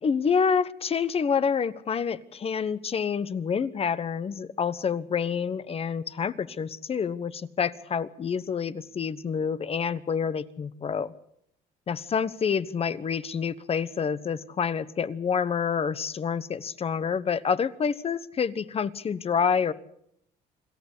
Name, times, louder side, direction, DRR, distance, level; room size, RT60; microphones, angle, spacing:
voice 1, 0.0-11.1 11.9-19.7, left 6 dB, 35° left, 15 dB, 1.1 m, -28 dB
26.5 x 14.0 x 8.3 m, 0.72 s
cardioid pair, 110°, 17 cm